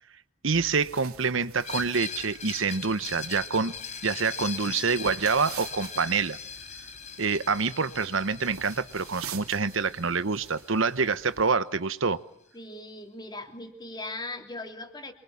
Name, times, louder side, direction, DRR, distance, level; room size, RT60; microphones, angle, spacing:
voice 1, 0.4-3.7 4.0-6.4 7.2-12.2, right 4 dB, 65° right, 14 dB, 1.0 m, -26 dB
sound 1, 0.5-11.5, right 7 dB, 85° right, 3.1 m, -47 dB
Screech, 1.6-11.3, left 6 dB, 35° left, 4.7 m, -40 dB
voice 2, 12.5-15.1, left 2 dB, 20° left, 5 dB, 3.1 m, -39 dB
27.0 x 23.5 x 8.6 m, 0.78 s
head